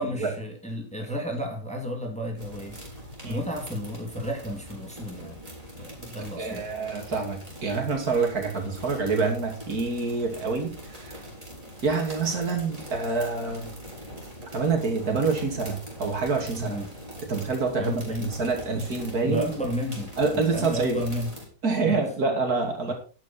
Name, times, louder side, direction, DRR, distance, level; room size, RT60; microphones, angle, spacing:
voice 1, 0.0-2.8 3.3-5.4 5.7-6.7 16.6-16.9 17.8-18.3 18.7-18.9 19.2-21.3 21.8-22.0 22.9-23.0, equal, 5° left, 1 dB, 2.7 m, -32 dB
sound 1, 2.4-21.5, equal, 25° right, 5.0 m, -42 dB
voice 2, 6.4-11.2 11.8-13.7 14.5-16.8 17.3-19.5 20.2-21.0 21.6-22.9, right 4 dB, 80° right, 2 dB, 3.1 m, -27 dB
12.0 x 9.4 x 4.4 m, 0.37 s
omnidirectional pair, 1.6 m